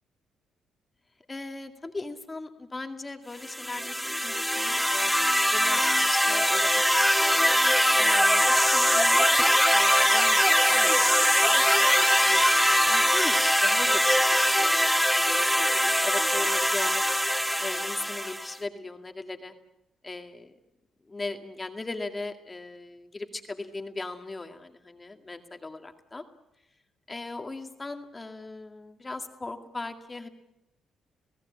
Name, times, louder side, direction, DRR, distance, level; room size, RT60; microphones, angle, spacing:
voice 1, 1.3-7.1 8.0-9.4 9.7-15.5 15.7-17.0 17.6-19.5 20.0-20.6 21.1-26.2 27.1-30.3, left 3 dB, 20° left, 6 dB, 2.1 m, -38 dB
sound 1, 3.4-18.5, equal, ahead, 0.8 m, -22 dB
27.5 x 17.5 x 8.6 m, 0.88 s
cardioid pair, 90°, 0 cm